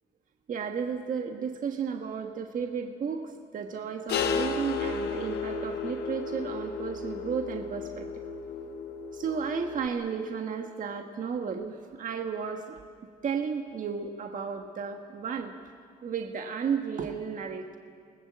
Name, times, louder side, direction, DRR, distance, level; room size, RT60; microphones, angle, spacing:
voice 1, 0.5-8.1 9.1-12.7 13.2-15.5 16.0-17.8, right 6 dB, 55° right, 4 dB, 1.5 m, -33 dB
sound 1, 4.1-9.9, left 5 dB, 85° left, 1.3 m, -33 dB
27.0 x 19.5 x 7.6 m, 2.2 s
cardioid pair, 90°, 16 cm